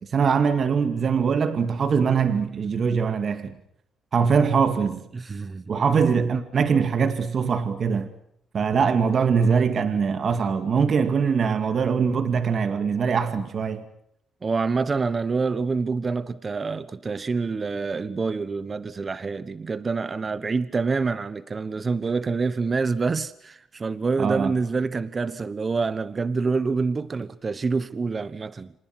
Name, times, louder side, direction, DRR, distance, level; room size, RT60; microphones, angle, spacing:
voice 1, 0.1-3.6 4.1-5.0 5.7-8.1 8.5-13.8 24.2-24.5, right 6 dB, 50° right, 2.2 m, -22 dB
voice 2, 5.1-5.6 14.4-28.7, right 4 dB, 35° right, 1.2 m, -26 dB
28.0 x 26.5 x 6.1 m
cardioid pair, 90°, 0 cm